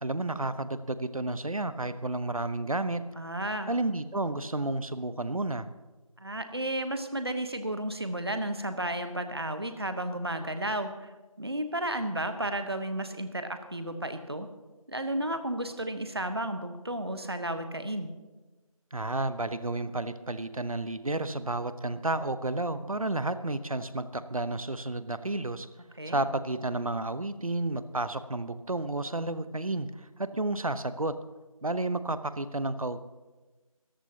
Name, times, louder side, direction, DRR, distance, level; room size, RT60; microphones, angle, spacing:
voice 1, 0.0-3.0 3.7-5.7 18.9-25.7 26.1-31.2 31.6-33.0, right 2 dB, 70° right, 13 dB, 0.9 m, -31 dB
voice 2, 3.2-3.7 6.2-11.1 11.4-14.5 14.9-18.1 26.0-26.2, right 1 dB, 45° right, 9 dB, 1.0 m, -33 dB
19.5 x 14.5 x 2.9 m, 1.2 s
figure-of-eight pair, 175°, 19 cm